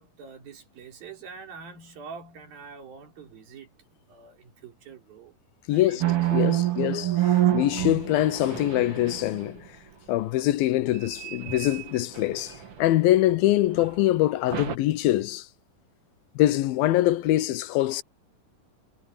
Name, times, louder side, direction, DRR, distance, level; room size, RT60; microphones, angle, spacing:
voice 1, 0.0-3.7 4.1-5.3 5.7-6.1 6.5-7.1, right 6 dB, 80° right, 5.5 m, -45 dB
voice 2, 5.7-6.0 6.3-9.7 10.1-15.5 16.4-18.0, left 15 dB, 90° left, 2.7 m, -24 dB
sound 1, 6.0-9.6 10.9-13.2 13.7-13.9 14.5-14.8, right 13 dB, 45° right, 2.4 m, -27 dB
omnidirectional pair, 4.1 m